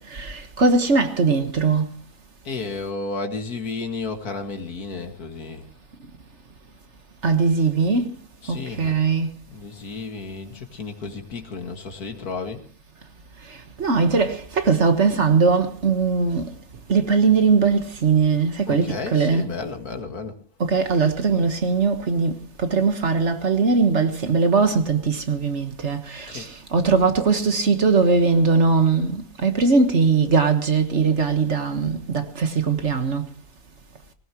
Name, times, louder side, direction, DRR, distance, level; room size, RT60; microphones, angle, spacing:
voice 1, 0.1-1.9 7.2-8.1 8.5-9.3 13.8-16.5 16.9-19.4 20.6-33.3, right 4 dB, 50° right, 1.7 m, -20 dB
voice 2, 2.4-5.7 8.4-9.0 9.5-12.6 18.7-20.4 26.3-26.5, left 4 dB, 90° left, 2.5 m, -32 dB
19.5 x 19.0 x 3.1 m
omnidirectional pair, 1.6 m